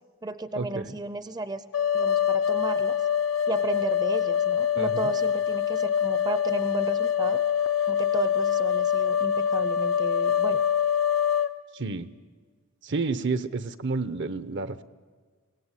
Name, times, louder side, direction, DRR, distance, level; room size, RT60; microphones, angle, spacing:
voice 1, 0.2-1.6 1.9-3.0 3.5-7.4 7.9-10.6, right 2 dB, 20° right, 13 dB, 0.6 m, -33 dB
sound 1, 1.7-11.5, left 8 dB, 90° left, 0.8 m, -25 dB
voice 2, 4.8-5.1 11.7-12.1 12.8-14.8, right 3 dB, 60° right, 13 dB, 0.8 m, -30 dB
23.5 x 17.5 x 9.9 m, 1.5 s
head